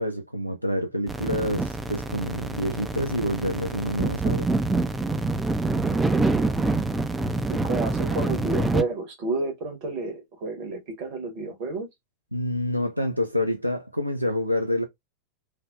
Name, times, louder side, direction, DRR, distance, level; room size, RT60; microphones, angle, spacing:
voice 1, 0.0-4.5 12.3-14.8, equal, 90° right, 0.4 m, -27 dB
sound 1, 1.1-8.8, right 3 dB, 10° right, 0.3 m, -26 dB
voice 2, 7.5-11.9, right 3 dB, 45° right, 1.2 m, -30 dB
3.2 x 2.0 x 2.4 m
figure-of-eight pair, 90°, 0 cm